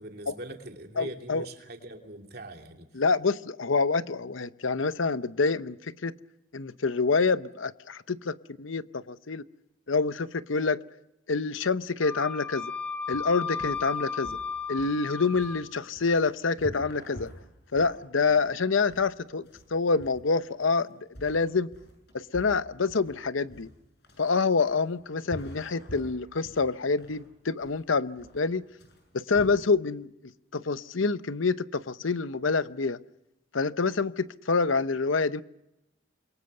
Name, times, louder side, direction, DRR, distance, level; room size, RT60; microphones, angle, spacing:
voice 1, 0.0-2.9, right 1 dB, 50° right, 3 dB, 2.8 m, -41 dB
voice 2, 1.0-1.5 2.9-6.1 6.5-9.4 9.9-10.8 11.3-12.7 13.1-14.4 14.7-17.3 17.7-19.4 19.7-20.9 21.2-21.7 22.1-23.7 24.2-28.6 29.1-30.1 30.5-33.0 33.5-35.4, left 4 dB, 85° left, 14 dB, 0.8 m, -27 dB
Wind instrument woodwind instrument, 12.0-15.7, left 5 dB, 5° left, 2.9 m, -34 dB
sound 1, 13.1-29.4, equal, 55° left, 7.8 m, -47 dB
28.0 x 23.0 x 6.7 m, 0.90 s
head